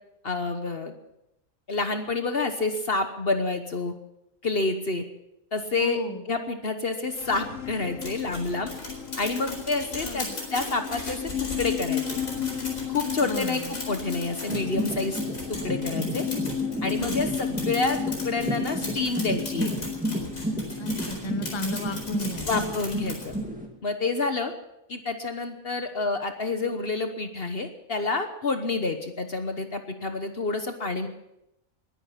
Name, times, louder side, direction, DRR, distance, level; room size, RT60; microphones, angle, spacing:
voice 1, 0.2-0.9 1.7-3.9 4.4-5.0 5.5-6.0 6.3-8.7 9.2-12.0 12.9-15.2 15.5-16.2 16.8-19.7 22.5-23.3 23.8-24.5 24.9-31.1, left 3 dB, 45° left, 7 dB, 1.3 m, -28 dB
voice 2, 5.8-6.2 9.5-9.6 9.9-10.4 13.3-13.7 17.0-17.2 20.8-22.6, left 2 dB, 20° left, 8 dB, 1.2 m, -33 dB
sound 1, 7.0-22.6, left 9 dB, 70° left, 1.4 m, -34 dB
sound 2, 8.0-23.4, left 1 dB, 85° left, 4.9 m, -38 dB
sound 3, 14.5-23.7, right 1 dB, 5° right, 2.3 m, -32 dB
21.0 x 11.0 x 5.8 m, 0.85 s
omnidirectional pair, 1.4 m